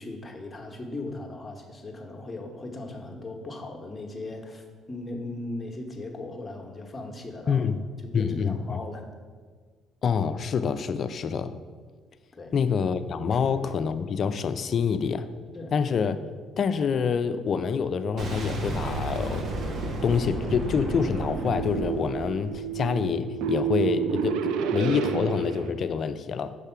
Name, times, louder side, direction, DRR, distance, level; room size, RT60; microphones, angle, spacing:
voice 1, 0.0-7.6 8.0-9.0 12.3-12.5 13.3-13.4 15.5-15.7, left 2 dB, 20° left, 1 dB, 1.1 m, -38 dB
voice 2, 7.5-7.8 8.1-8.8 10.0-11.6 12.5-15.3 15.7-16.2 16.6-19.5 20.0-26.5, left 6 dB, 50° left, 12 dB, 0.4 m, -26 dB
Boom, 18.2-23.0, right 1 dB, 55° right, 1.1 m, -32 dB
sound 1, 18.9-25.7, right 8 dB, 80° right, 0.4 m, -31 dB
6.6 x 3.5 x 5.6 m, 1.5 s
supercardioid pair, 75°, 0 cm